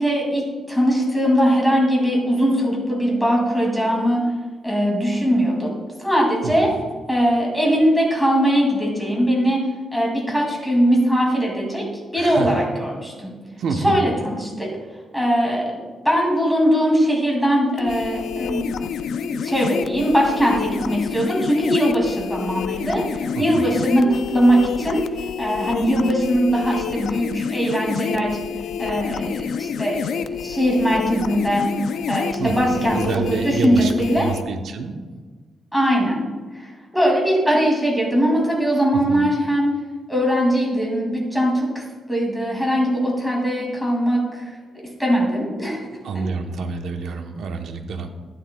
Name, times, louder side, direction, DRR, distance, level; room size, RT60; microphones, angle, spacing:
voice 1, 0.0-4.2 4.6-5.7 6.0-6.7 7.1-9.6 9.9-11.8 12.1-13.3 13.8-14.7 15.1-15.6 16.0-18.7 19.4-25.0 25.4-28.4 28.8-31.7 32.1-34.3 35.7-36.2 36.9-39.7 40.1-41.5 42.1-44.2 45.0-45.8 46.1-46.2, equal, ahead, -2 dB, 2.4 m, -20 dB
voice 2, 6.4-6.8 12.2-12.6 13.6-14.1 23.3-23.7 32.4-35.0 38.9-39.2 46.0-48.1, right 4 dB, 65° right, 5 dB, 0.9 m, -28 dB
sound 1, 17.8-34.4, left 7 dB, 75° left, 0.4 m, -28 dB
11.5 x 9.5 x 2.3 m, 1.4 s
wide cardioid pair, 150°, 0 cm